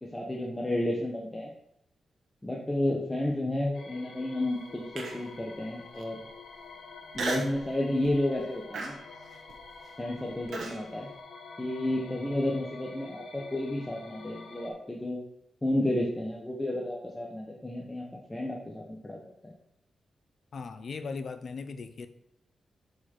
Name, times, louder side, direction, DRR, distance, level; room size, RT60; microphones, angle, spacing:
voice 1, 0.0-1.5 2.4-6.3 7.1-9.0 10.0-11.1 11.6-15.2 15.6-18.0 18.3-19.5, left 1 dB, 15° left, -2 dB, 1.0 m, -31 dB
sound 1, 3.7-14.7, left 4 dB, 80° left, 1.2 m, -48 dB
Human voice, 5.0-5.4 5.9-6.0 7.1-7.6 8.0-8.3 8.7-10.8, right 3 dB, 75° right, 1.3 m, -36 dB
voice 2, 20.5-22.1, left 4 dB, 55° left, 10 dB, 0.7 m, -38 dB
6.6 x 4.9 x 4.4 m, 0.78 s
cardioid pair, 95°, 0 cm